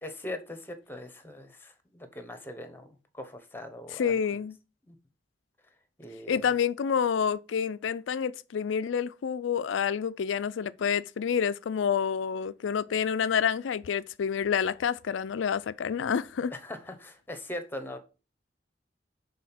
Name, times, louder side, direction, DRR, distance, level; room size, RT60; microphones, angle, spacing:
voice 1, 0.0-4.4 4.8-5.0 6.0-6.5 16.5-18.0, left 1 dB, 10° left, 0.9 m, -41 dB
voice 2, 4.0-4.5 6.3-16.5, left 7 dB, 85° left, 0.4 m, -28 dB
6.3 x 3.7 x 5.7 m
head